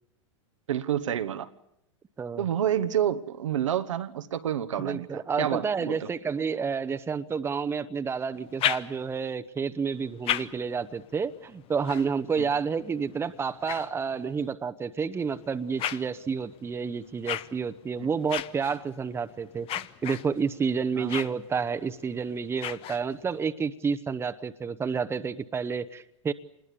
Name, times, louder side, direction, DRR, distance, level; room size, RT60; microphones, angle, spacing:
voice 1, 0.7-1.5 2.4-6.1 12.4-12.5 18.0-18.1 20.9-21.1, right 10 dB, 85° right, 1.2 m, -29 dB
voice 2, 4.8-26.3, right 5 dB, 15° right, 0.9 m, -30 dB
sound 1, 8.3-9.3 9.9-14.5 15.1-23.4, left 11 dB, 35° left, 1.0 m, -37 dB
26.5 x 21.0 x 6.9 m
hypercardioid pair, 110°, 16 cm